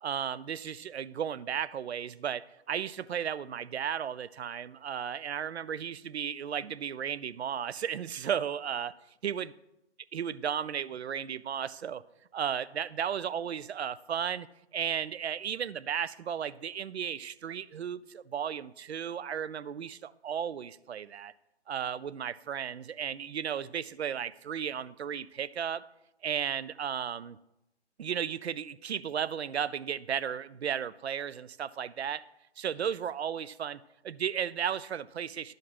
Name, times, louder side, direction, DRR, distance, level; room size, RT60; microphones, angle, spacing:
voice 1, 0.0-8.9 9.2-9.5 10.1-12.0 12.3-14.5 14.7-21.3 21.7-25.8 26.2-27.4 28.0-32.2 32.6-35.5, right 8 dB, 70° right, 16 dB, 0.5 m, -34 dB
12.5 x 5.2 x 4.1 m, 0.88 s
figure-of-eight pair, 140°, 34 cm